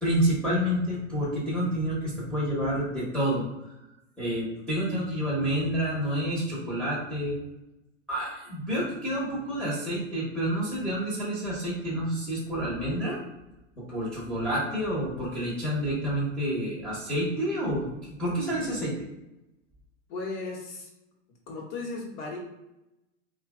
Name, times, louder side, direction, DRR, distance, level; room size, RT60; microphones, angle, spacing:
voice 1, 0.0-3.7 4.2-7.4 8.1-13.2 13.8-17.9 18.2-18.9, equal, ahead, -9 dB, 1.1 m, -29 dB
voice 2, 20.1-20.9 21.5-22.4, left 3 dB, 40° left, -1 dB, 1.3 m, -35 dB
3.0 x 2.4 x 3.7 m, 0.93 s
hypercardioid pair, 120°, 37 cm